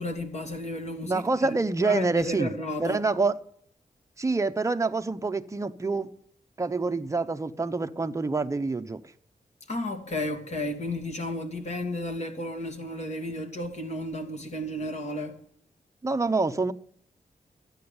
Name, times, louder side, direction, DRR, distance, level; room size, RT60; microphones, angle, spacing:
voice 1, 0.0-3.0 9.7-15.4, left 1 dB, 50° left, 2.4 m, -33 dB
voice 2, 1.0-2.5 2.8-3.4 4.2-6.1 6.6-9.0 16.0-16.7, right 3 dB, 20° right, 0.6 m, -26 dB
13.0 x 8.7 x 6.9 m
wide cardioid pair, 140°, 15 cm